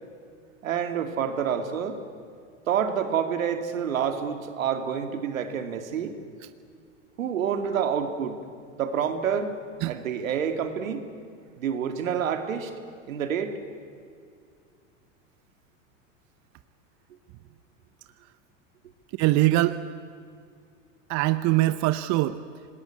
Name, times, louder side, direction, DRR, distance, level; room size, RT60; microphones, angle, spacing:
voice 1, 0.6-2.0 2.7-6.2 7.2-8.4 8.8-9.6 9.9-11.1 11.6-12.7 13.1-13.6, right 7 dB, 85° right, 7 dB, 2.4 m, -28 dB
voice 2, 19.2-19.8 21.1-22.4, right 17 dB, 45° right, 12 dB, 0.9 m, -22 dB
26.0 x 20.0 x 8.3 m, 2.3 s
hypercardioid pair, 95°, 39 cm